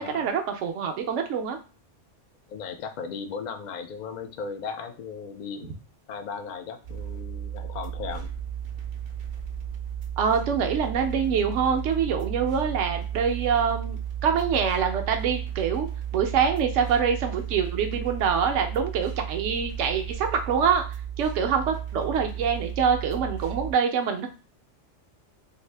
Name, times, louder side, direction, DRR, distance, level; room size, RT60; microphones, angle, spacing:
voice 1, 0.0-1.6 10.2-15.9 16.1-20.8 21.2-24.3, right 6 dB, 75° right, 4 dB, 0.9 m, -25 dB
voice 2, 2.5-5.7 6.1-8.3, left 5 dB, 60° left, 6 dB, 0.4 m, -36 dB
sound 1, 6.8-23.7, right 9 dB, 55° right, 0.6 m, -34 dB
2.7 x 2.6 x 3.2 m, 0.34 s
omnidirectional pair, 1.3 m